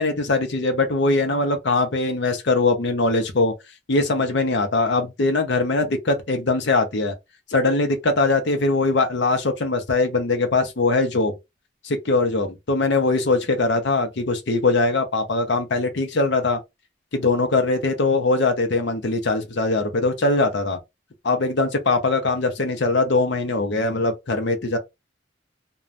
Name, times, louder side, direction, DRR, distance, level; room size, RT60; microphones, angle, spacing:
voice 1, 0.0-3.5 3.9-7.1 7.5-11.3 11.8-16.6 17.1-20.8 21.2-24.8, left 3 dB, 65° left, 0.6 m, -21 dB
2.5 x 2.2 x 3.1 m
head